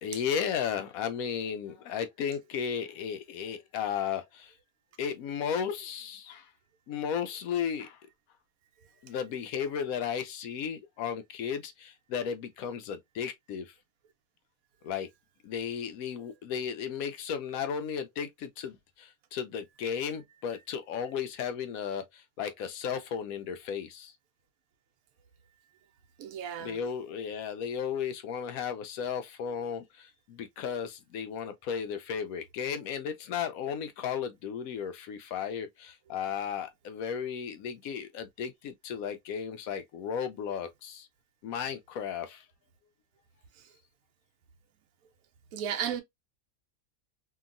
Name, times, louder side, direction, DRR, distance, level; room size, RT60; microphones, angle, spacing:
voice 1, 0.0-4.5 5.0-6.5 6.9-8.0 9.0-13.7 14.8-15.1 15.4-24.1 26.6-41.1 41.4-42.5, left 7 dB, 75° left, 1.0 m, -34 dB
voice 2, 8.7-9.1 26.2-26.8 43.5-43.7 45.5-46.0, right 9 dB, 75° right, 1.1 m, -36 dB
2.9 x 2.6 x 2.4 m
omnidirectional pair, 1.5 m